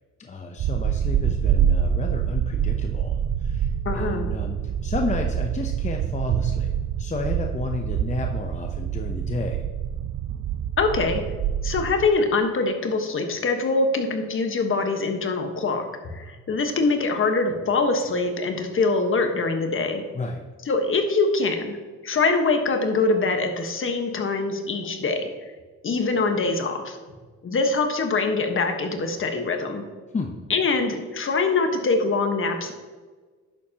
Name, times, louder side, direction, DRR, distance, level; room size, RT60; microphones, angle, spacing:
voice 1, 0.2-6.7 7.0-9.7 20.1-20.4 30.1-30.3, left 3 dB, 25° left, 3 dB, 0.7 m, -32 dB
sound 1, 0.6-12.1, right 9 dB, 50° right, 0.4 m, -26 dB
voice 2, 3.8-4.3 10.8-11.2 11.6-20.0 20.7-21.8 22.0-25.5 25.8-27.0 27.4-29.8 30.5-32.7, left 3 dB, 45° left, 5 dB, 1.3 m, -24 dB
10.5 x 7.2 x 2.9 m, 1.4 s
cardioid pair, 90°, 30 cm